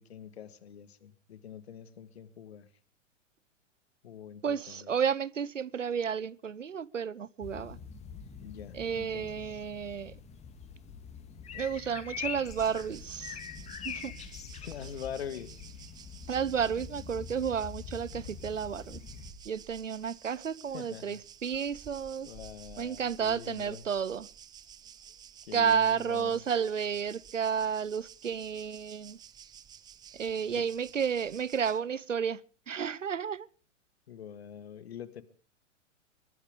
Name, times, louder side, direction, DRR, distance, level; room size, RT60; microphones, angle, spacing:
voice 1, 0.0-2.7 4.0-4.9 8.4-9.3 14.6-15.6 20.7-21.2 22.2-23.8 25.5-26.4 30.5-30.6 34.1-35.2, left 9 dB, 55° left, 1.7 m, -44 dB
voice 2, 4.4-7.8 8.7-10.1 11.5-13.4 13.8-14.1 16.3-19.0 19.5-22.3 22.8-24.3 25.5-29.2 30.1-32.4 32.7-33.5, right 7 dB, 80° right, 0.8 m, -32 dB
sound 1, 7.4-19.3, left 7 dB, 15° left, 1.9 m, -44 dB
sound 2, 12.5-31.8, right 8 dB, 10° right, 0.7 m, -52 dB
22.0 x 12.0 x 4.9 m
figure-of-eight pair, 110°, 37 cm